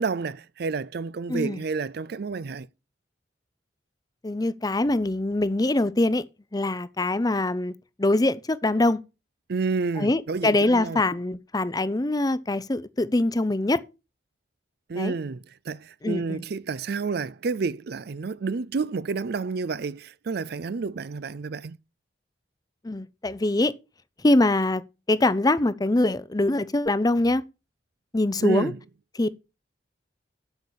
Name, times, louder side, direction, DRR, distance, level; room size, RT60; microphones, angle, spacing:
voice 1, 0.0-2.7 9.5-11.0 14.9-21.8 28.4-28.8, right 4 dB, 60° right, 0.4 m, -30 dB
voice 2, 1.3-1.6 4.2-6.2 6.5-9.0 10.0-13.8 14.9-15.1 16.0-16.4 22.8-23.7 24.2-24.8 25.1-27.4 28.1-28.7 29.1-29.5, left 2 dB, 20° left, 0.6 m, -23 dB
8.1 x 7.2 x 6.4 m
head